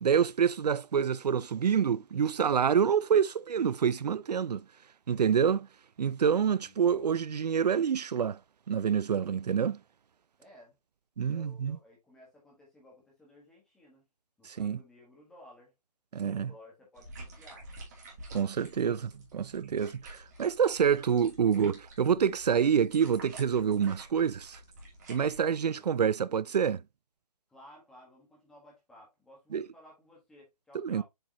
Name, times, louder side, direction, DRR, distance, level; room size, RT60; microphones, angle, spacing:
voice 1, 0.0-4.6 5.1-5.7 6.0-8.4 8.7-9.8 11.2-11.8 14.4-14.8 16.1-16.5 18.3-24.6 25.1-26.8 29.5-29.7 30.8-31.0, right 7 dB, 75° right, 0.5 m, -27 dB
voice 2, 6.6-7.0 10.4-10.8 11.2-14.0 14.4-15.7 16.1-17.7 25.3-25.9 27.5-31.0, left 1 dB, ahead, 1.3 m, -56 dB
sound 1, 17.0-25.4, right 2 dB, 25° right, 2.6 m, -49 dB
7.5 x 4.8 x 2.8 m
hypercardioid pair, 175°, 21 cm